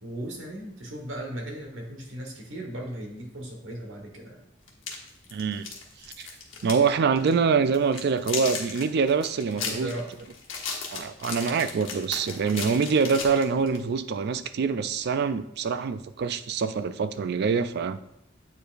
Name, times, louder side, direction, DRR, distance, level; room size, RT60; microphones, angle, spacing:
voice 1, 0.0-4.4 9.5-10.1, right 1 dB, 80° right, 1.4 m, -37 dB
sound 1, 4.7-6.9 7.2-7.3 7.7-13.8, left 5 dB, 75° left, 1.3 m, -35 dB
voice 2, 5.3-5.7 6.0-6.3 6.6-9.9 10.9-18.0, right 5 dB, 55° right, 0.4 m, -25 dB
8.2 x 4.6 x 2.5 m
head